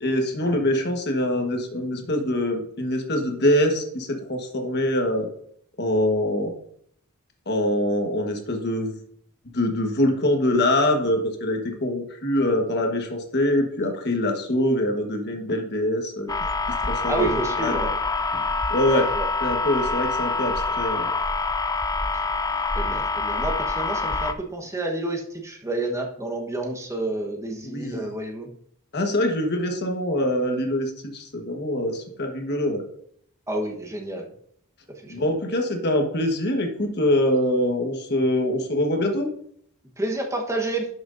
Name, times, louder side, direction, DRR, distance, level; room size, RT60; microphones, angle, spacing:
voice 1, 0.0-5.3 5.8-6.5 7.5-8.9 9.5-16.3 16.8-17.9 18.7-19.0 19.4-21.1 27.6-28.1 28.9-32.8 35.1-39.3, left 1 dB, 50° left, 3 dB, 1.4 m, -24 dB
sound 1, 16.3-24.3, left 3 dB, 15° left, 0.4 m, -26 dB
voice 2, 17.0-17.9 18.9-19.3 22.7-28.5 33.5-34.3 34.9-35.3 40.0-40.9, right 2 dB, 15° right, 1 dB, 1.1 m, -29 dB
11.0 x 6.3 x 2.6 m, 0.66 s
head